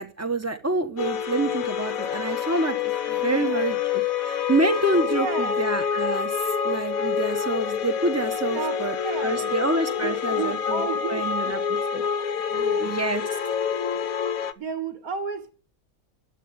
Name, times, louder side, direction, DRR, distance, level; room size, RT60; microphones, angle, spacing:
voice 1, 0.0-6.3 6.6-9.0 9.2-10.8 11.1-11.6 11.9-12.0 12.8-13.2, right 2 dB, 10° right, 1.1 m, -27 dB
sound 1, 1.0-14.5, left 7 dB, 75° left, 1.3 m, -27 dB
voice 2, 3.2-3.8 5.1-5.6 8.5-9.5 10.0-11.5 12.5-13.0 14.6-15.5, right 6 dB, 85° right, 1.9 m, -33 dB
11.0 x 8.3 x 9.6 m
omnidirectional pair, 1.5 m